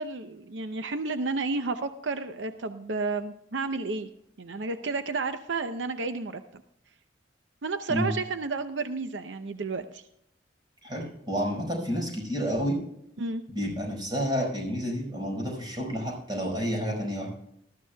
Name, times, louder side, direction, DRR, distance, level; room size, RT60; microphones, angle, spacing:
voice 1, 0.0-4.1 4.4-6.4 7.6-10.0 13.2-13.4, right 3 dB, 80° right, 8 dB, 0.6 m, -31 dB
voice 2, 10.8-12.8 13.5-17.3, equal, 25° right, 0 dB, 4.9 m, -30 dB
20.0 x 13.5 x 2.3 m, 0.75 s
head